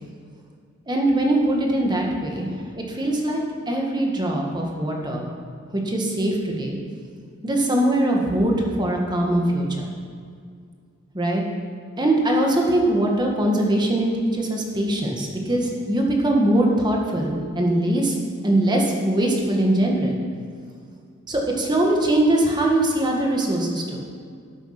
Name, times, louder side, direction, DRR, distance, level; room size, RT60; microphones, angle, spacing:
voice 1, 0.9-2.5 2.8-5.3 5.7-6.8 7.4-8.5 8.8-9.9 11.1-11.4 12.0-18.2 18.4-20.2 21.3-24.0, right 1 dB, 20° right, 0 dB, 1.7 m, -22 dB
12.5 x 8.7 x 5.8 m, 2.2 s
head